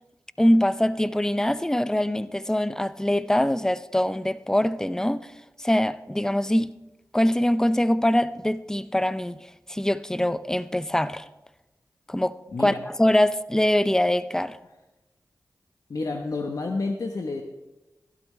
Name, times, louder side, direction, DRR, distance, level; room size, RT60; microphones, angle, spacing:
voice 1, 0.4-5.3 5.6-6.7 7.1-9.4 9.7-11.2 12.1-12.3 12.6-14.6, left 1 dB, 10° left, 0.5 m, -23 dB
voice 2, 15.9-17.4, left 3 dB, 65° left, 1.0 m, -29 dB
15.0 x 12.0 x 3.3 m
cardioid pair, 40°, 6 cm